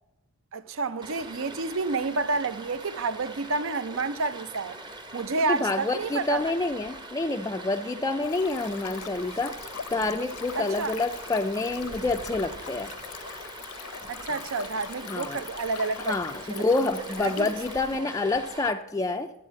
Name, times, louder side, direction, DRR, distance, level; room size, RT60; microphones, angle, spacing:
voice 1, 0.5-4.8 5.1-6.5 10.5-11.0 14.1-16.1 16.5-16.9 17.2-17.5 17.9-18.0, right 3 dB, 60° right, 0.6 m, -30 dB
Stream, 1.0-18.7, right 2 dB, 20° right, 0.8 m, -43 dB
voice 2, 5.5-9.6 9.9-12.9 15.1-15.4 16.0-19.3, left 3 dB, 15° left, 0.4 m, -28 dB
Stream 2, 8.2-18.0, left 8 dB, 75° left, 0.7 m, -42 dB
12.0 x 8.1 x 7.5 m
head